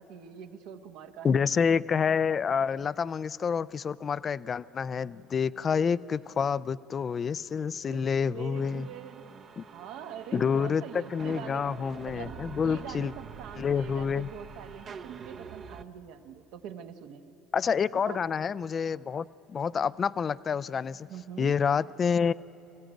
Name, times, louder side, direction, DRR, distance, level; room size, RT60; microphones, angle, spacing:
voice 1, 0.0-1.4 7.9-9.3 9.7-11.6 12.0-17.3 18.1-18.2 21.1-21.5, right 9 dB, 70° right, 6 dB, 1.5 m, -44 dB
voice 2, 1.2-8.9 9.6-9.7 10.3-13.1 13.6-14.3 17.5-21.1 21.4-22.3, left 6 dB, 35° left, 18 dB, 0.5 m, -28 dB
sound 1, 8.6-15.8, right 6 dB, 45° right, 0.9 m, -45 dB
26.5 x 16.0 x 9.1 m, 3.0 s
hypercardioid pair, 70°, 0 cm